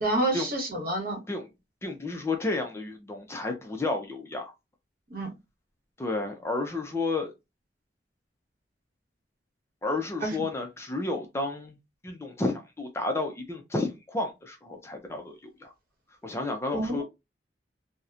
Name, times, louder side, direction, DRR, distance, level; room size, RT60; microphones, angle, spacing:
voice 1, 0.0-1.2 5.1-5.3 10.2-10.3 16.7-17.0, right 1 dB, 50° right, 1.1 m, -28 dB
voice 2, 1.8-4.5 6.0-7.3 9.8-11.8 12.0-15.7 16.2-17.0, left 2 dB, 15° left, 0.4 m, -31 dB
2.8 x 2.0 x 2.3 m
head